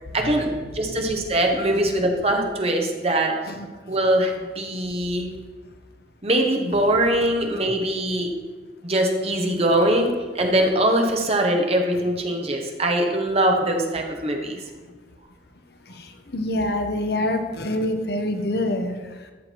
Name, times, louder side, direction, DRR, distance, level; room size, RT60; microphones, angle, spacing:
voice 1, 0.1-3.3 3.9-5.3 6.2-8.3 8.8-14.6, right 1 dB, 35° right, 2 dB, 1.2 m, -22 dB
voice 2, 15.8-19.3, left 1 dB, 60° left, 6 dB, 0.9 m, -26 dB
12.5 x 6.3 x 4.6 m, 1.4 s
head